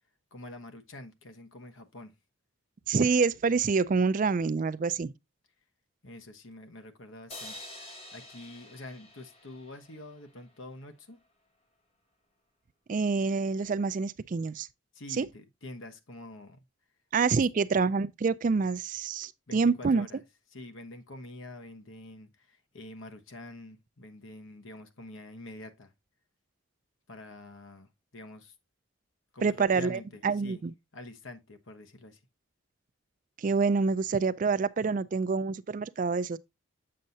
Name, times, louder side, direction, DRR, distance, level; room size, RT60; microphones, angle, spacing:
voice 1, 0.3-2.1 6.0-11.2 14.9-16.6 19.5-20.2 20.5-25.9 27.1-28.5 29.3-30.6 30.9-32.2, left 2 dB, 70° left, 1.2 m, -46 dB
voice 2, 2.9-5.1 12.9-14.7 15.2-15.3 17.1-20.1 29.4-30.7 33.4-36.4, right 4 dB, 40° right, 0.3 m, -27 dB
sound 1, 7.3-10.6, left 1 dB, 30° left, 1.8 m, -47 dB
7.6 x 6.5 x 2.7 m
head